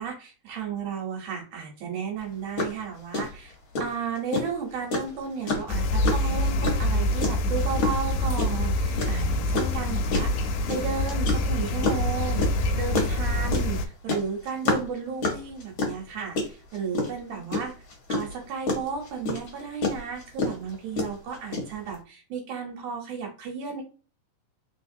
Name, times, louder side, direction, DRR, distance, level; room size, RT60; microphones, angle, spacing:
voice 1, 0.0-3.5 3.8-17.7 18.1-23.8, right 6 dB, 80° right, 0 dB, 2.5 m, -34 dB
sound 1, 2.2-2.3 2.6-2.8 3.1-22.0, left 3 dB, 55° left, 1.6 m, -28 dB
sound 2, 5.7-13.9, left 1 dB, 85° left, 2.1 m, -26 dB
4.2 x 4.1 x 2.7 m, 0.36 s
omnidirectional pair, 3.6 m